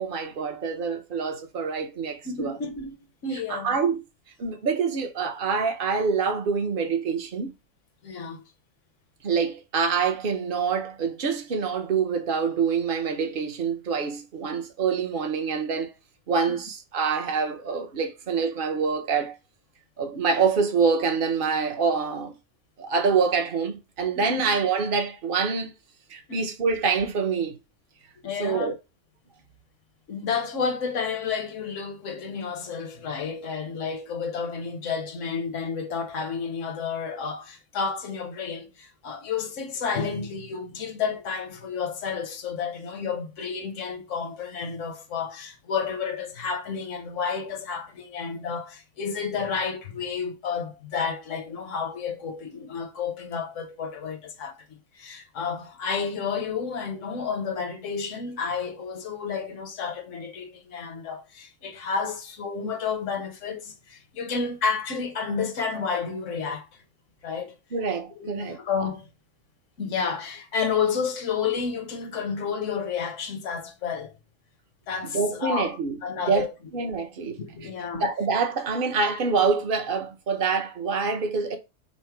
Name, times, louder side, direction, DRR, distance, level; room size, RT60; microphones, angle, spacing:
voice 1, 0.0-2.6 3.5-4.0 4.4-7.5 9.2-15.9 16.3-19.3 20.0-22.3 22.8-25.7 26.1-27.6 28.4-28.7 67.7-68.6 75.1-76.0 76.3-76.5 76.7-77.7 78.0-81.6, right 5 dB, 45° right, 0.9 m, -26 dB
voice 2, 2.2-3.0 3.2-3.7 8.0-8.4 24.2-24.4 26.3-26.4 28.2-28.7 30.1-66.7 67.2-67.5 68.2-69.1 69.8-74.1 74.9-75.7 76.0-76.5 77.4-78.0, left 6 dB, 65° left, 1.2 m, -31 dB
5.7 x 2.1 x 4.5 m
omnidirectional pair, 1.5 m